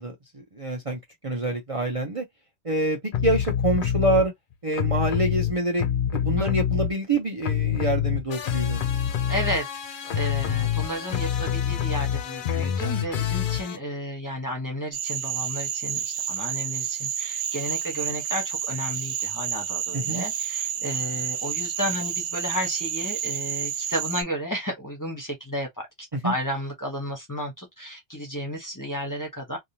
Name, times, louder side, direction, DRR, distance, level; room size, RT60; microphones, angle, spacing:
voice 1, 0.0-2.3 2.6-4.3 4.6-5.9 6.1-8.9 19.9-20.2 26.1-26.3, right 2 dB, 30° right, 0.9 m, -26 dB
sound 1, 3.1-4.3 4.7-7.2 7.4-13.8, left 9 dB, 55° left, 0.7 m, -26 dB
voice 2, 9.3-25.9 26.2-29.6, equal, 20° left, 1.1 m, -32 dB
Cricket / Frog, 14.9-24.2, right 9 dB, 65° right, 0.7 m, -30 dB
3.5 x 2.4 x 2.8 m
omnidirectional pair, 1.1 m